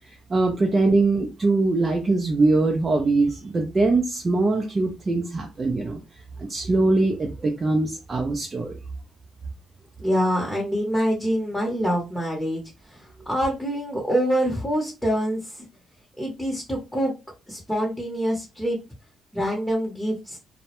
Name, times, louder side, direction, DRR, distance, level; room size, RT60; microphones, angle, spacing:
voice 1, 0.1-6.0 6.4-8.7, right 3 dB, 30° right, 1 dB, 0.4 m, -22 dB
voice 2, 10.0-12.6 12.9-15.7 16.2-17.1 17.5-18.8 19.3-20.4, equal, 5° left, -1 dB, 0.8 m, -25 dB
2.2 x 2.0 x 2.9 m, 0.27 s
cardioid pair, 90°, 0 cm